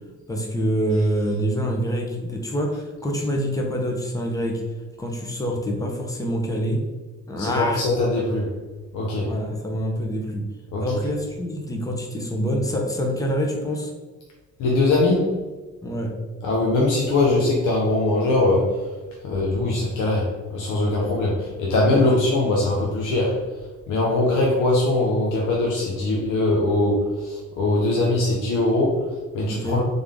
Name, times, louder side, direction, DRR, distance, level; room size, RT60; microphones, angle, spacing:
voice 1, 0.3-4.6 5.0-6.8 7.3-7.8 9.3-10.4 10.8-13.9 15.8-16.1 21.9-22.0 29.5-29.8, equal, 10° left, 1 dB, 0.9 m, -26 dB
voice 2, 7.4-8.5 8.9-9.3 10.7-11.0 14.6-15.4 16.4-19.0 19.2-23.4 23.9-29.9, left 2 dB, 85° left, -3 dB, 0.9 m, -21 dB
3.6 x 3.6 x 3.6 m, 1.3 s
cardioid pair, 90°, 30 cm